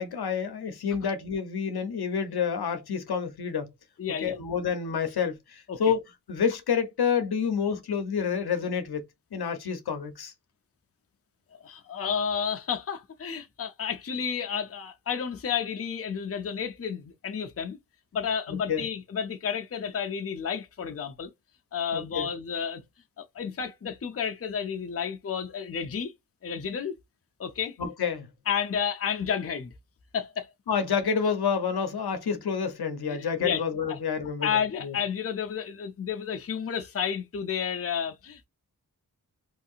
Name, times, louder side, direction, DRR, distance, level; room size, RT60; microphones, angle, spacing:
voice 1, 0.0-3.7 4.2-6.0 6.3-9.0 9.3-10.3 18.5-18.9 21.9-22.3 27.8-28.3 30.7-34.9, left 6 dB, 80° left, 0.8 m, -28 dB
voice 2, 4.0-4.4 5.7-5.8 11.6-17.8 18.1-21.3 21.7-22.8 23.2-26.1 26.4-26.9 27.4-27.7 28.5-29.7 30.1-30.5 33.1-33.6 33.9-34.0 34.4-38.5, left 7 dB, 40° left, 0.5 m, -31 dB
3.1 x 2.7 x 2.4 m
wide cardioid pair, 65°, 38 cm